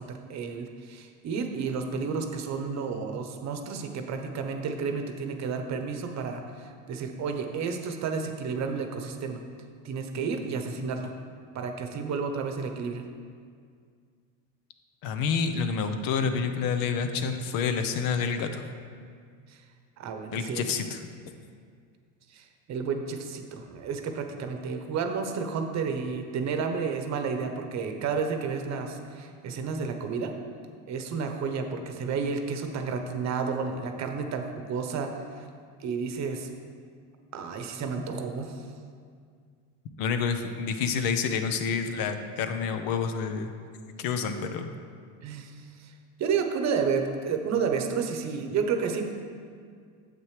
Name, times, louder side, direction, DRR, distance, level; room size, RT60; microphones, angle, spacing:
voice 1, 0.0-9.4 9.8-11.1 11.5-13.0 19.5-19.6 20.0-20.7 22.3-30.3 30.9-35.5 35.8-36.5 37.3-38.6 45.2-45.5 45.8-45.9 46.2-49.1, right 5 dB, 40° right, 6 dB, 0.9 m, -31 dB
voice 2, 15.0-18.7 20.3-21.0 40.0-43.5 44.0-44.7, left 6 dB, 55° left, 8 dB, 0.9 m, -28 dB
8.9 x 7.7 x 3.3 m, 2.1 s
supercardioid pair, 105°, 40 cm